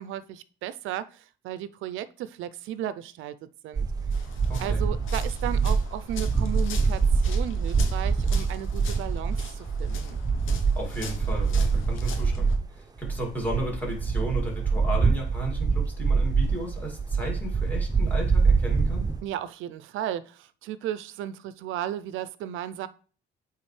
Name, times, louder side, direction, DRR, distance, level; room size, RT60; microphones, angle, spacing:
voice 1, 0.0-3.9 4.6-10.2 19.2-22.9, right 11 dB, 85° right, 0.4 m, -35 dB
sound 1, 3.8-12.7 13.0-19.2, right 4 dB, 20° right, 0.7 m, -25 dB
sound 2, 4.1-12.6, left 7 dB, 80° left, 0.9 m, -44 dB
voice 2, 4.5-4.8 10.7-19.1, right 1 dB, 10° left, 2.4 m, -34 dB
8.7 x 3.5 x 3.2 m
cardioid pair, 90°, 20 cm